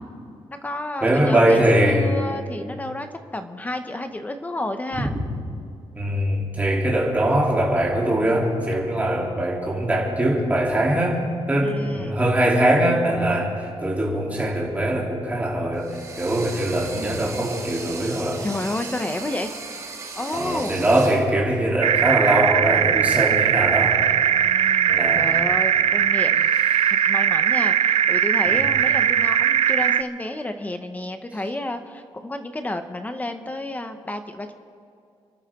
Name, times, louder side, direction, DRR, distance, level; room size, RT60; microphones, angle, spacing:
voice 1, 0.5-3.1 3.3-5.1 11.6-12.2 18.4-19.5 20.2-20.8 24.3-26.5 26.9-34.5, left 1 dB, 15° left, 7 dB, 0.8 m, -31 dB
voice 2, 1.0-2.1 5.9-11.2 11.5-18.4 20.3-24.0 24.9-25.3 26.7-27.0 28.5-28.6, right 1 dB, 15° right, -3 dB, 3.0 m, -22 dB
sound 1, 15.8-21.3, right 4 dB, 30° right, 1.4 m, -37 dB
sound 2, 21.8-30.0, right 9 dB, 70° right, 0.5 m, -19 dB
29.5 x 12.0 x 3.7 m, 2.5 s
wide cardioid pair, 155°, 11 cm